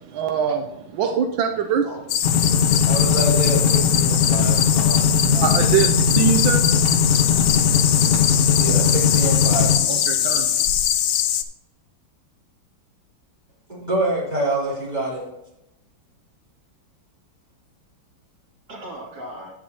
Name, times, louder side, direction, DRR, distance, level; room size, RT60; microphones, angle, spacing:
voice 1, 0.0-1.9 2.5-2.6 5.4-8.6 9.8-10.6, right 7 dB, 85° right, 4 dB, 1.5 m, -25 dB
sound 1, 2.1-11.4, left 10 dB, 75° left, 1.3 m, -22 dB
sound 2, 2.2-9.8, left 6 dB, 35° left, 1.2 m, -20 dB
voice 2, 2.8-4.5 8.5-9.7 13.7-15.2, right 1 dB, 20° right, -6 dB, 3.6 m, -26 dB
voice 3, 4.3-5.1 5.3-5.9 18.7-19.5, right 1 dB, 55° right, -4 dB, 3.3 m, -37 dB
9.9 x 9.2 x 2.9 m, 0.88 s
omnidirectional pair, 2.1 m